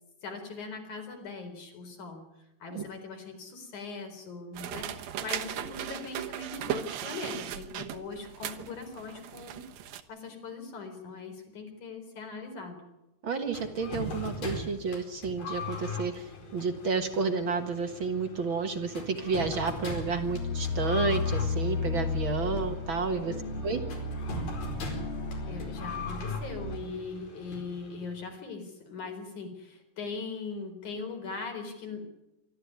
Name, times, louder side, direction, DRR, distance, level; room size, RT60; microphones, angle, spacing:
voice 1, 0.2-2.2 2.6-9.6 10.1-12.8 23.3-23.9 25.4-32.0, left 4 dB, 55° left, 5 dB, 5.4 m, -40 dB
sound 1, 4.5-10.0, right 11 dB, 80° right, 3.0 m, -37 dB
voice 2, 13.2-23.3 23.6-23.8, right 4 dB, 50° right, 6 dB, 1.5 m, -31 dB
sound 2, 13.5-28.2, left 3 dB, 70° left, 6.4 m, -40 dB
sound 3, 19.5-26.8, left 3 dB, 25° left, 1.5 m, -34 dB
25.5 x 13.5 x 9.6 m, 0.96 s
omnidirectional pair, 4.2 m